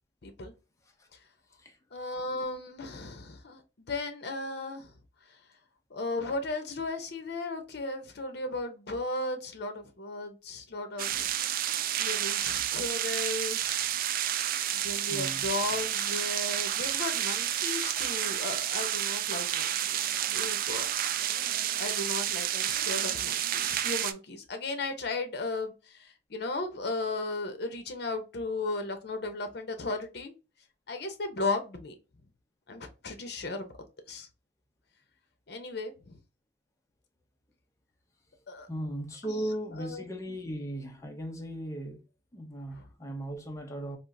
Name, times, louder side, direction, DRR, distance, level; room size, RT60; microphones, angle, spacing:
voice 1, 0.2-0.5 1.9-4.9 5.9-11.3 12.0-13.9 14.7-20.9 21.8-30.3 30.9-31.9 32.7-33.7 34.1-34.3 35.5-36.2 38.5-38.7 39.2-40.4 42.7-42.9, left 2 dB, 65° left, 0.7 m, -36 dB
sound 1, 11.0-24.1, right 11 dB, 55° right, 0.3 m, -30 dB
voice 2, 15.1-15.5 38.7-42.0 42.3-44.0, right 1 dB, 15° left, 0.6 m, -37 dB
3.5 x 2.5 x 2.6 m
head